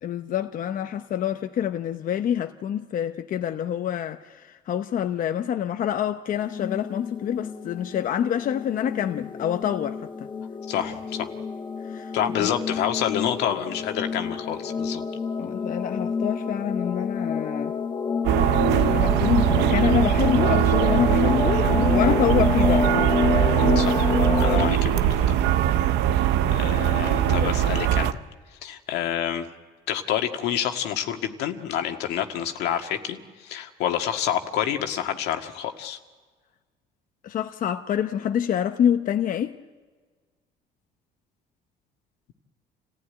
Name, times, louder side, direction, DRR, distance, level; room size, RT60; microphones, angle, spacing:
voice 1, 0.0-10.1 11.8-12.1 12.4-12.5 15.4-17.7 18.4-22.9 26.4-26.6 27.1-27.5 37.2-39.5, left 9 dB, 55° left, 0.8 m, -27 dB
sound 1, 6.4-24.7, left 5 dB, 30° left, 1.5 m, -28 dB
voice 2, 10.7-11.3 12.1-15.0 23.8-24.0 24.4-25.4 26.1-26.2 26.5-28.1 28.6-29.5 29.9-36.0, left 10 dB, 85° left, 1.8 m, -28 dB
sound 2, 18.2-28.1, right 11 dB, 90° right, 0.7 m, -21 dB
27.5 x 15.5 x 9.5 m
cardioid pair, 110°, 17 cm